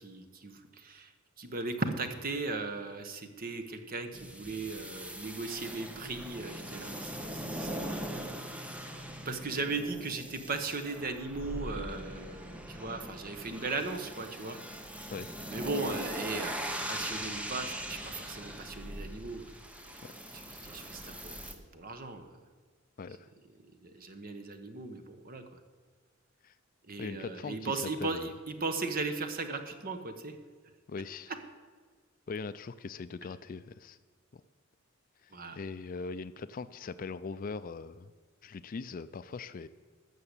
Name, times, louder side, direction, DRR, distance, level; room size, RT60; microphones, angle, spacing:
voice 1, 0.0-8.0 8.2-8.5 9.2-14.6 15.5-19.5 19.9-22.5 23.6-25.6 26.8-30.4 31.3-31.4 35.3-35.6, right 3 dB, 45° right, 7 dB, 1.1 m, -37 dB
sound 1, 4.1-21.5, equal, 5° right, 0.9 m, -41 dB
voice 2, 23.0-23.3 26.4-26.5 27.0-27.7 28.0-28.3 30.9-31.3 32.3-34.0 34.3-34.4 35.2-38.1 38.4-39.7, left 4 dB, 40° left, 14 dB, 0.4 m, -41 dB
13.0 x 6.8 x 8.2 m, 1.5 s
head